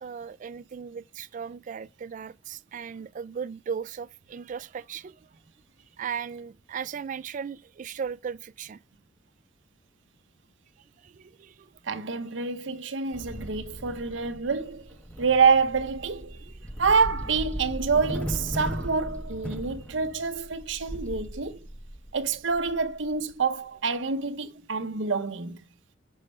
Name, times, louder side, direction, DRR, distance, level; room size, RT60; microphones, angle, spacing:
voice 1, 0.0-5.2 6.0-8.8 11.0-11.7, right 7 dB, 45° right, 0.3 m, -37 dB
voice 2, 11.8-16.4 16.8-21.6 22.1-25.6, right 5 dB, 80° right, 0.7 m, -27 dB
sound 1, 13.1-23.3, equal, 5° left, 0.7 m, -37 dB
6.4 x 5.4 x 3.2 m
head